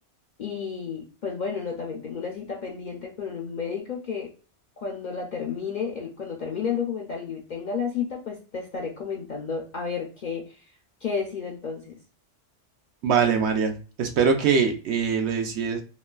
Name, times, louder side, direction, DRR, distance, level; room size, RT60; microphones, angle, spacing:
voice 1, 0.4-4.3 4.8-10.6 11.0-12.0, left 6 dB, 60° left, 0 dB, 0.5 m, -32 dB
voice 2, 13.0-15.8, right 6 dB, 70° right, 4 dB, 0.8 m, -23 dB
3.1 x 2.2 x 2.2 m, 0.37 s
omnidirectional pair, 1.2 m